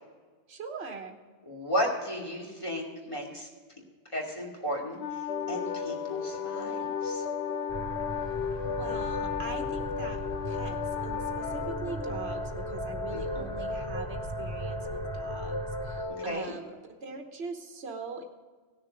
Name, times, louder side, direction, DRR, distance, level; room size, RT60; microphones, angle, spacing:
voice 1, 0.5-1.2 8.6-16.7 17.0-18.2, right 4 dB, 70° right, 4 dB, 1.5 m, -42 dB
voice 2, 1.5-3.5 4.1-5.0 5.5-7.2 13.1-13.4 16.1-16.5, equal, 30° left, -2 dB, 2.7 m, -34 dB
Wind instrument woodwind instrument, 5.0-12.5, left 9 dB, 60° left, 0.7 m, -38 dB
sound 1, 5.3-16.3, left 4 dB, 80° left, 1.1 m, -36 dB
sound 2, 7.7-16.0, right 1 dB, 35° right, 1.9 m, -39 dB
17.5 x 6.8 x 5.1 m, 1.4 s
omnidirectional pair, 1.1 m